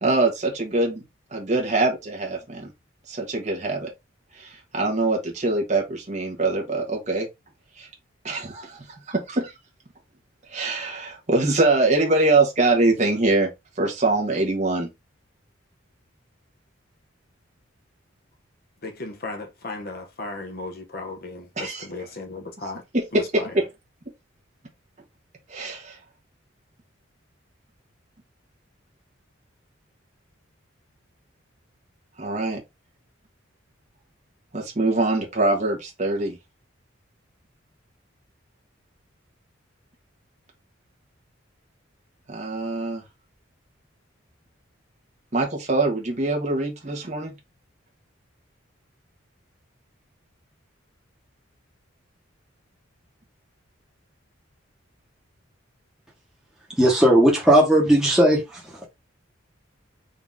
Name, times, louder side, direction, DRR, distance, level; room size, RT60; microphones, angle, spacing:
voice 1, 0.0-1.0 1.3-2.7 3.1-3.9 4.4-7.3 7.8-7.9 8.2-8.8 9.1-9.5 10.5-13.5 13.8-14.9 21.6-21.9 22.9-23.7 25.5-26.0 32.2-32.6 34.5-36.4 42.3-43.0 45.3-47.3, right 2 dB, 35° right, 1.2 m, -23 dB
voice 2, 18.8-22.8 23.1-23.2, left 2 dB, 45° left, 0.9 m, -35 dB
voice 3, 56.8-58.8, right 1 dB, 5° right, 1.2 m, -17 dB
4.0 x 2.8 x 3.6 m
head